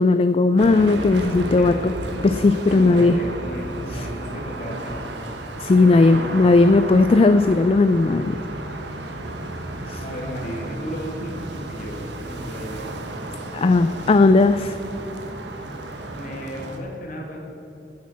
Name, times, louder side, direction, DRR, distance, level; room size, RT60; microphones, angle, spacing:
voice 1, 0.0-1.9 2.2-3.2 5.6-8.4 9.9-10.0 13.5-14.8, left 3 dB, 35° left, 11 dB, 0.3 m, -16 dB
sound 1, 0.6-16.8, right 1 dB, 90° right, 1.3 m, -33 dB
voice 2, 1.6-2.1 2.7-5.1 5.8-6.4 9.7-12.8 16.1-17.4, equal, 50° left, 0 dB, 2.4 m, -34 dB
10.5 x 9.5 x 7.4 m, 2.9 s
head